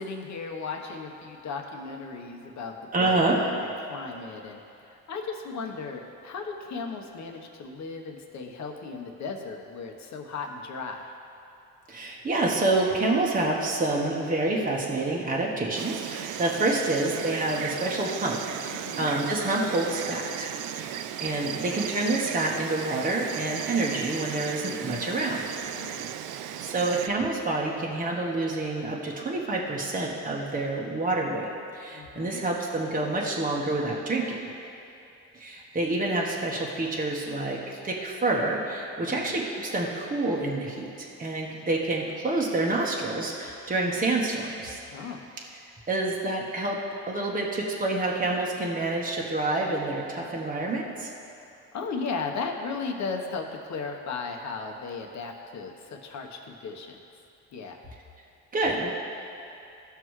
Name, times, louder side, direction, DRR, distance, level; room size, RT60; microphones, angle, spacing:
voice 1, 0.0-11.1 18.7-19.1 21.6-21.8 25.7-26.1 31.9-32.4 39.1-39.4 44.9-45.3 51.7-57.0 57.5-57.8, left 4 dB, 65° left, 2 dB, 1.1 m, -36 dB
voice 2, 2.9-3.4 11.9-20.9 21.2-25.6 26.3-34.4 35.3-44.8 45.9-46.8 47.1-51.1 58.5-58.9, right 2 dB, 25° right, -3 dB, 1.3 m, -28 dB
Insect, 15.7-27.1, right 10 dB, 85° right, 0.5 m, -36 dB
16.0 x 5.8 x 3.2 m, 2.7 s
cardioid pair, 90°, 30 cm